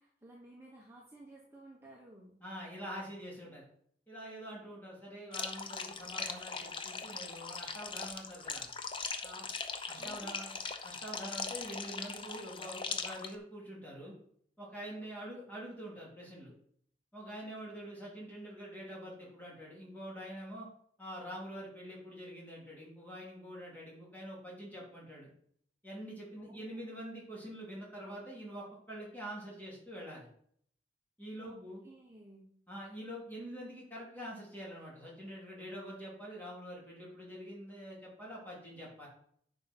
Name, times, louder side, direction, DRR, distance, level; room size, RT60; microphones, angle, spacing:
voice 1, 0.0-2.3 10.0-10.4 15.0-15.1 26.4-26.8 31.4-31.6 31.8-32.5, right 1 dB, 15° right, -3 dB, 1.3 m, -55 dB
voice 2, 2.4-3.7 4.1-8.7 9.2-9.5 9.9-10.6 10.8-14.1 14.6-16.5 17.1-20.7 21.0-25.3 25.8-30.3 31.2-31.8 32.7-39.1, equal, 10° left, -5 dB, 3.4 m, -45 dB
sound 1, 5.3-13.3, left 5 dB, 30° left, 0.7 m, -40 dB
10.5 x 5.3 x 4.6 m, 0.64 s
head